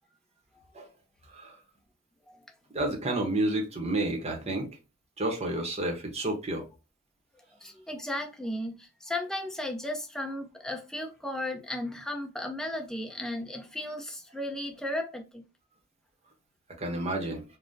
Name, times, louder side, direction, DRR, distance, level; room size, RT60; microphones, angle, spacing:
voice 1, 2.7-4.7 5.2-6.6 16.8-17.4, right 1 dB, 30° right, 0.8 m, -30 dB
voice 2, 7.6-15.4, left 1 dB, 5° left, 0.5 m, -35 dB
3.5 x 2.1 x 2.6 m
head